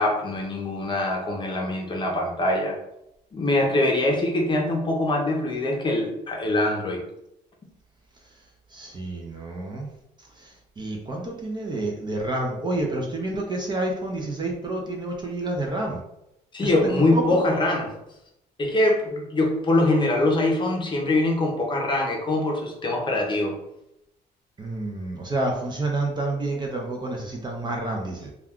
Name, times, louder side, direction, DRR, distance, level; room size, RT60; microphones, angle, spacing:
voice 1, 0.0-2.8 3.3-7.0 16.5-17.9 18.6-23.6, left 2 dB, 30° left, 0 dB, 0.7 m, -23 dB
voice 2, 8.7-9.9 10.4-16.0 16.6-17.4 24.6-28.3, right 2 dB, 25° right, 1 dB, 0.5 m, -29 dB
2.3 x 2.2 x 3.5 m, 0.84 s
cardioid pair, 110°, 17 cm